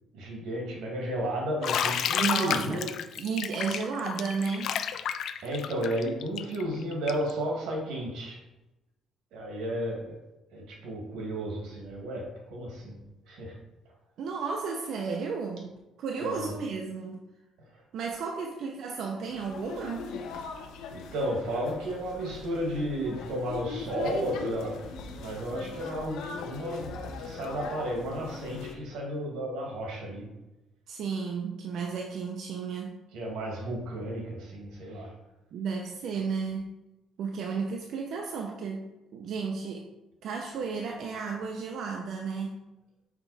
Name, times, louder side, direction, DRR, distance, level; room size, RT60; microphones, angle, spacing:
voice 1, 0.1-2.9 5.4-8.4 9.3-10.2 10.5-13.0 13.3-13.6 16.2-16.6 17.6-17.8 20.9-30.3 33.1-35.1, right 1 dB, 85° right, 0 dB, 1.9 m, -33 dB
Bathtub (filling or washing), 1.6-7.3, left 8 dB, 55° left, 0.4 m, -30 dB
voice 2, 2.2-2.8 3.2-4.7 14.2-15.7 16.0-17.2 17.9-20.1 30.9-33.0 35.5-36.7 37.2-39.9 40.2-42.6, right 5 dB, 60° right, 1 dB, 0.6 m, -33 dB
bormes street sounds, 19.3-28.7, left 5 dB, 80° left, 0.8 m, -40 dB
5.9 x 4.6 x 4.1 m, 1.0 s
cardioid pair, 165°, 0 cm